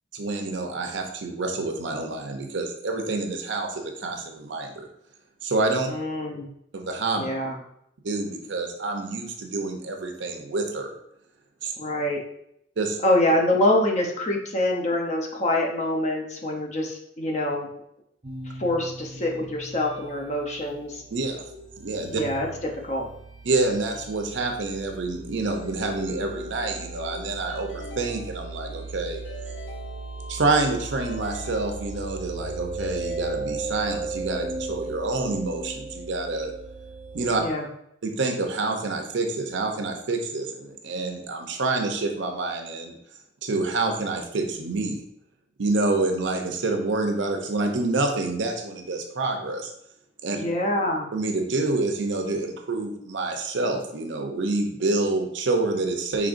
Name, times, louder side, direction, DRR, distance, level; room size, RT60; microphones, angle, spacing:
voice 1, 0.1-4.9 5.4-5.9 6.7-7.2 8.0-10.9 11.6-11.7 12.8-13.0 21.1-21.4 21.8-22.2 23.4-29.2 30.3-36.5 37.1-37.4 38.0-43.0 43.4-45.0 45.6-49.7 50.2-50.4 51.1-56.3, right 3 dB, 70° right, 4 dB, 0.6 m, -27 dB
voice 2, 5.9-6.5 7.2-7.6 11.8-12.2 13.0-17.7 18.6-21.0 22.1-23.1 37.4-37.6 50.3-51.1, left 1 dB, 35° left, 1 dB, 0.6 m, -25 dB
sound 1, 18.2-37.4, right 2 dB, 30° right, 0.6 m, -37 dB
Keyboard (musical) / Ringtone, 27.5-28.8 29.2-30.6 31.0-32.4 32.8-34.1, left 1 dB, 75° left, 1.1 m, -44 dB
5.0 x 3.4 x 2.5 m, 0.76 s
head